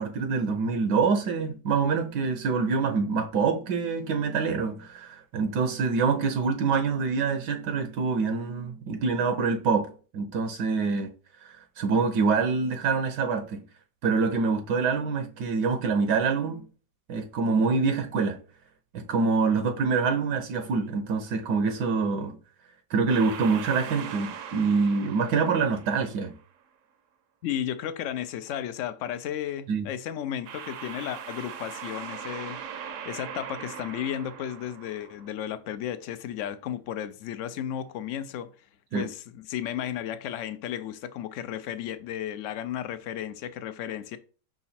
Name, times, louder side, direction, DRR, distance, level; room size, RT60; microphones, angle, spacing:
voice 1, 0.0-11.1 11.4-13.6 14.0-16.6 17.1-18.4 18.9-22.4 22.9-26.4 29.7-29.9 38.9-39.1, right 4 dB, 75° right, 1.3 m, -26 dB
sound 1, 23.1-26.4 30.4-35.3, right 7 dB, 60° right, 0.8 m, -40 dB
voice 2, 27.4-32.6 33.0-38.5 38.9-44.2, left 10 dB, 80° left, 0.6 m, -34 dB
5.8 x 3.9 x 4.2 m
omnidirectional pair, 1.9 m